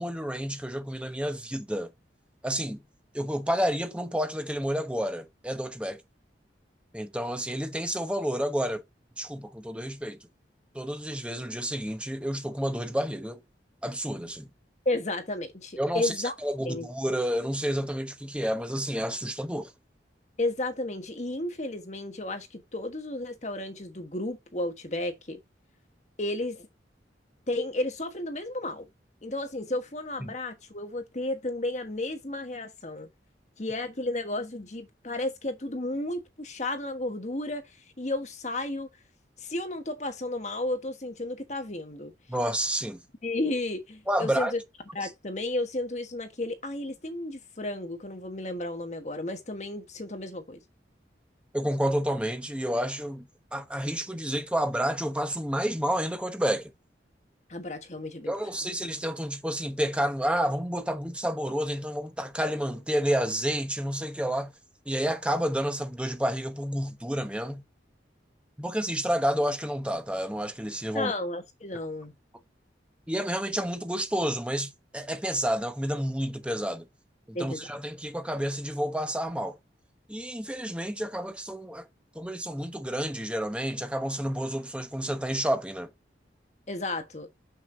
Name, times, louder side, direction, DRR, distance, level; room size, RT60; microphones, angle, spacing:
voice 1, 0.0-1.9 2.4-2.8 3.1-6.0 6.9-8.8 9.2-10.2 10.7-13.4 13.8-14.5 15.8-16.1 16.4-19.7 30.2-30.3 42.3-43.0 44.1-44.5 51.5-56.7 58.3-64.5 64.9-67.6 68.6-71.1 73.1-76.9 77.3-79.6 80.1-81.8 82.1-85.9, equal, 5° right, 1.0 m, -30 dB
voice 2, 14.8-16.3 16.6-16.9 20.4-25.4 26.2-26.7 27.5-28.9 29.2-33.1 33.6-38.9 39.4-42.1 43.2-44.6 44.9-50.6 57.5-58.3 70.9-72.1 77.3-77.7 86.7-87.3, left 2 dB, 40° left, 1.4 m, -33 dB
7.2 x 6.1 x 2.8 m
head